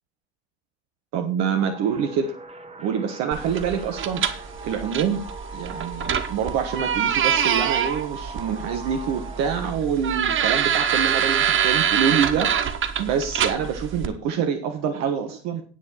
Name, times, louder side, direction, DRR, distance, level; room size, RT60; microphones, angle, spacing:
voice 1, 1.1-2.3 2.8-5.2 5.5-12.5 13.0-15.6, right 7 dB, 60° right, 6 dB, 1.5 m, -26 dB
sound 1, 1.5-9.6, right 4 dB, 20° right, 2.1 m, -39 dB
sound 2, 3.3-14.1, right 8 dB, 40° right, 1.3 m, -25 dB
9.5 x 6.4 x 6.3 m, 0.38 s
hypercardioid pair, 65°, 30 cm